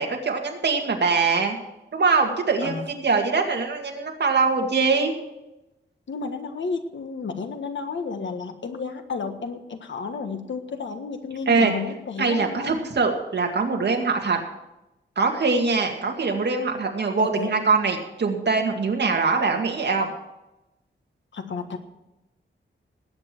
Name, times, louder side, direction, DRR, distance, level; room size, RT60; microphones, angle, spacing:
voice 1, 0.0-1.6 1.9-5.1 11.5-11.7 12.2-14.4 15.2-20.1, right 4 dB, 60° right, 2 dB, 2.1 m, -23 dB
voice 2, 6.1-12.8 17.2-17.7 21.3-21.8, left 4 dB, 70° left, 7 dB, 1.5 m, -32 dB
19.0 x 8.9 x 4.5 m, 0.95 s
wide cardioid pair, 180°, 20 cm